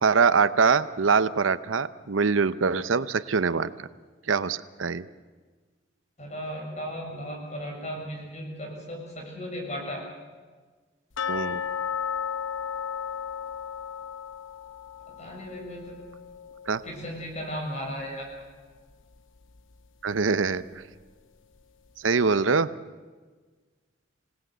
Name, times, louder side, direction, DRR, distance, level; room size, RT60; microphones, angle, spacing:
voice 1, 0.0-3.7 4.3-5.0 11.3-11.6 16.7-16.8 20.0-20.8 22.0-22.7, right 5 dB, 85° right, 14 dB, 0.7 m, -23 dB
voice 2, 6.2-10.0 15.2-16.0 16.9-18.3, equal, 35° left, 1 dB, 6.9 m, -36 dB
sound 1, 11.2-18.0 18.3-18.4 18.9-19.0 19.5-19.6, left 8 dB, 75° left, 0.9 m, -35 dB
26.5 x 18.0 x 8.1 m, 1.4 s
head